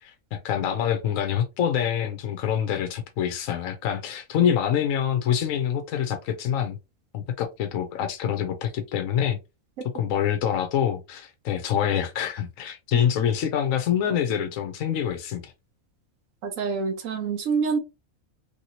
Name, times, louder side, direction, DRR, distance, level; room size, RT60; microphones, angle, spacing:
voice 1, 0.0-6.8 7.1-9.4 9.9-15.5, left 9 dB, 75° left, 1.0 m, -26 dB
voice 2, 16.4-17.8, right 5 dB, 75° right, 1.0 m, -26 dB
3.1 x 2.8 x 2.7 m
omnidirectional pair, 1.4 m